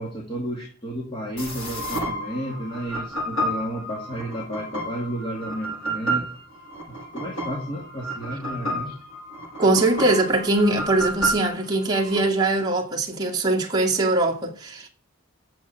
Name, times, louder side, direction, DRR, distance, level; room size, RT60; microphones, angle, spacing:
voice 1, 0.0-6.3 6.9-9.0, right 1 dB, 25° left, 2.3 m, -32 dB
sound 1, 1.4-12.2, right 1 dB, 80° left, 7.4 m, -31 dB
voice 2, 9.6-14.9, right 2 dB, 20° right, 2.1 m, -22 dB
8.6 x 7.6 x 8.7 m
head